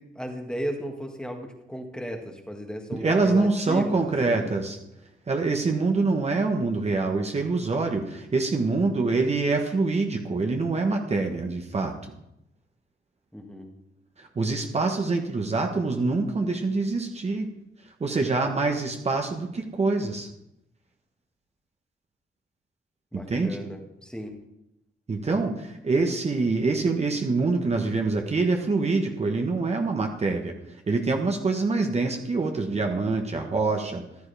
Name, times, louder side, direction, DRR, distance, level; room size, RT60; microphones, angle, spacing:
voice 1, 0.0-4.5 13.3-13.7 23.1-24.3, equal, 5° left, 2 dB, 1.7 m, -35 dB
voice 2, 2.9-4.8 5.3-12.1 14.2-17.5 17.8-20.3 23.3-23.6 25.1-34.0, right 3 dB, 30° right, 3 dB, 1.2 m, -25 dB
14.5 x 11.5 x 3.4 m, 0.84 s
wide cardioid pair, 130°, 21 cm